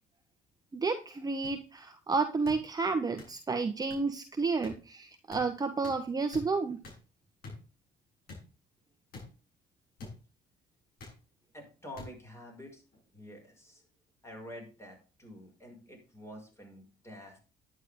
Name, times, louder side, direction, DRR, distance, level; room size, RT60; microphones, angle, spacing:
voice 1, 0.7-6.8, right 4 dB, 20° right, 6 dB, 1.2 m, -31 dB
sound 1, 1.4-1.5 2.4-2.6 3.2-3.3 3.9-4.0 4.6-4.7 5.3-5.4 5.8-6.0 6.3-6.4 6.8-7.0 7.4-7.6 8.3-8.4 9.1-9.2 10.0-10.1 11.0-11.2 12.0-12.1 12.9-13.1, left 3 dB, 65° left, 7.3 m, -45 dB
voice 2, 11.5-12.8 13.1-13.8 14.2-17.4, equal, 15° left, 2 dB, 6.2 m, -48 dB
11.0 x 9.9 x 3.7 m, 0.34 s
cardioid pair, 110°, 17 cm